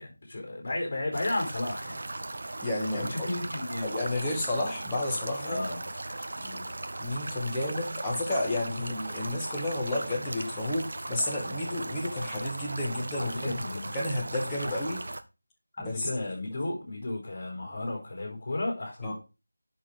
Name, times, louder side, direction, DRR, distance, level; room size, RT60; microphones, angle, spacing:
voice 1, 0.0-2.0 2.9-4.0 5.5-5.9 6.3-6.6 13.2-14.0 14.6-14.8 15.7-19.1, left 2 dB, 35° left, 4.7 m, -34 dB
sound 1, 1.1-15.2, right 2 dB, 50° right, 0.8 m, -37 dB
voice 2, 2.6-3.3 3.8-5.6 7.0-13.6 13.9-15.0 15.8-16.1 19.0-19.1, left 1 dB, 10° left, 1.7 m, -31 dB
8.1 x 6.3 x 4.7 m
figure-of-eight pair, 165°, 0 cm